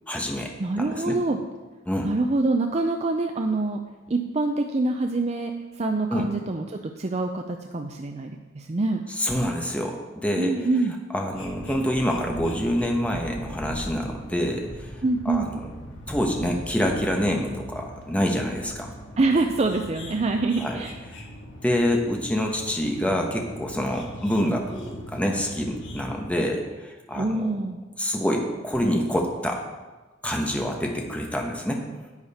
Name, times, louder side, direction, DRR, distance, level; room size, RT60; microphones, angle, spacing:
voice 1, 0.1-1.2 1.9-2.1 6.1-6.3 9.2-10.6 11.1-14.9 15.2-15.7 16.1-18.9 20.6-20.7 21.1-21.2 21.6-27.4 28.0-29.6 30.2-31.8, equal, 5° left, 1 dB, 1.1 m, -26 dB
voice 2, 0.6-1.4 2.0-3.8 4.1-5.5 5.8-9.0 10.4-10.9 15.0-15.5 19.2-20.9 27.2-27.8, right 2 dB, 35° right, 4 dB, 0.5 m, -25 dB
sound 1, 11.3-26.3, equal, 65° left, 1.6 m, -40 dB
10.5 x 8.8 x 4.3 m, 1.2 s
head